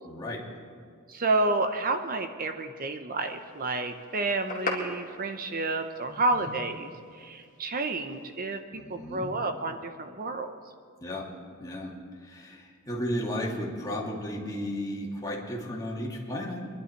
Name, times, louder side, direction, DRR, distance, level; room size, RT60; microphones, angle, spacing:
voice 1, 0.0-0.5 6.1-6.5 8.7-9.4 11.0-11.3 11.6-16.7, equal, 15° left, -3 dB, 2.2 m, -34 dB
voice 2, 1.1-6.9 7.1-10.5, right 2 dB, 40° right, 7 dB, 0.8 m, -30 dB
sound 1, 3.2-8.6, left 3 dB, 35° left, 2.0 m, -41 dB
24.0 x 11.0 x 4.6 m, 2.1 s
head